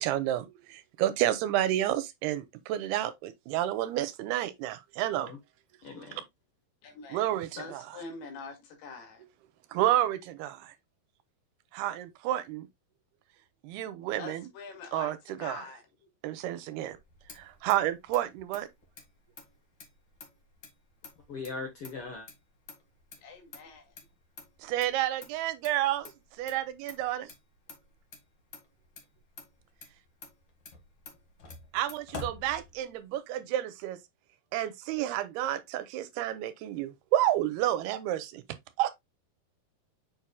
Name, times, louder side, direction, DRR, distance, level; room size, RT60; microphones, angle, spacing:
voice 1, 0.0-5.3 6.1-6.2 7.1-8.0 9.7-10.7 11.7-12.7 13.6-14.5 14.9-15.6 16.2-17.0 17.3-18.7 24.6-26.1 26.4-27.3 31.7-34.0 34.5-38.4 38.8-38.9, right 13 dB, 85° right, 2.7 m, -30 dB
voice 2, 5.8-6.2 21.3-22.3, left 4 dB, 65° left, 1.3 m, -40 dB
voice 3, 6.8-7.3 7.6-9.2 14.2-15.1 15.4-15.8 23.2-23.9, left 4 dB, 90° left, 4.0 m, -44 dB
Motor vehicle (road), 16.9-33.1, left 3 dB, 45° left, 1.5 m, -50 dB
7.2 x 6.1 x 2.2 m
omnidirectional pair, 4.5 m